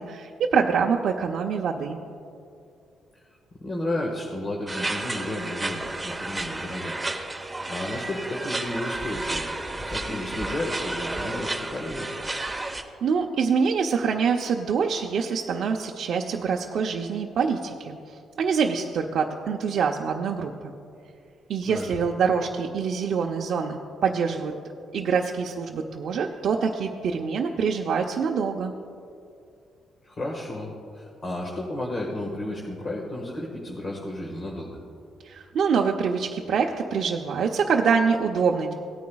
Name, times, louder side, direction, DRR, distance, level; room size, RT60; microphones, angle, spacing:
voice 1, 0.0-2.0 13.0-18.0 18.4-20.7 21.5-24.5 24.9-28.7 35.2-38.7, right 6 dB, 65° right, -1 dB, 0.6 m, -25 dB
voice 2, 3.6-7.3 7.6-9.4 9.8-12.1 21.6-21.9 30.0-34.8, left 1 dB, 35° left, -2 dB, 1.5 m, -32 dB
sound 1, 4.7-12.8, right 2 dB, 15° right, 0.9 m, -32 dB
17.5 x 9.4 x 2.3 m, 2.5 s
cardioid pair, 90°, 0 cm